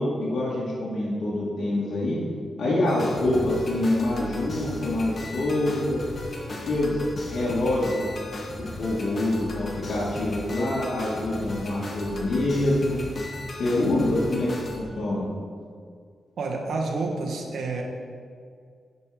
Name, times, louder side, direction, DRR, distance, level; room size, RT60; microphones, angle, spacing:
voice 1, 0.0-2.2 2.6-6.0 6.7-8.0 8.6-13.0 13.5-15.3, left 1 dB, 65° left, -7 dB, 1.8 m, -25 dB
sound 1, 2.9-14.8, left 2 dB, 45° left, 1.3 m, -37 dB
voice 2, 16.4-17.8, right 3 dB, 80° right, 0 dB, 1.3 m, -29 dB
8.5 x 5.6 x 4.9 m, 2.1 s
cardioid pair, 90°, 0 cm